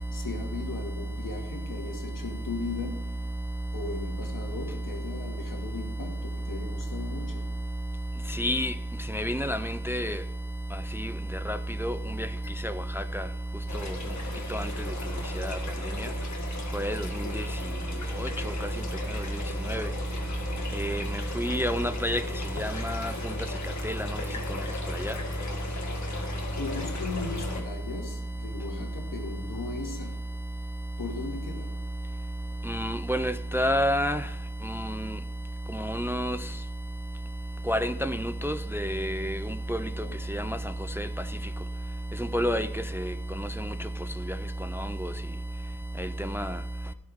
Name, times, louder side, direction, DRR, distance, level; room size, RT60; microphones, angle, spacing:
voice 1, 0.1-3.1 3.7-7.5 26.5-30.2 31.0-31.8 40.0-40.3, left 4 dB, 80° left, 2.2 m, -38 dB
voice 2, 8.4-8.7 9.1-10.2 11.0-11.1 11.5-11.9 12.6-13.2 14.5-14.7 15.4-15.6 16.7-17.0 17.4-17.5 19.7-19.9 20.8-21.0 21.4-22.2 22.6-23.1 23.8-24.0 25.0-25.1 32.7-34.2 34.8-34.9 35.8-36.4 37.7-39.4 39.7-39.8 40.3-40.6 41.0-41.1 42.3-42.7 43.0-43.1 44.8-44.9 46.0-46.5, equal, 10° right, 0.3 m, -28 dB
sound 1, 13.7-27.6, left 3 dB, 60° left, 1.9 m, -37 dB
16.5 x 6.5 x 3.6 m
wide cardioid pair, 135°, 32 cm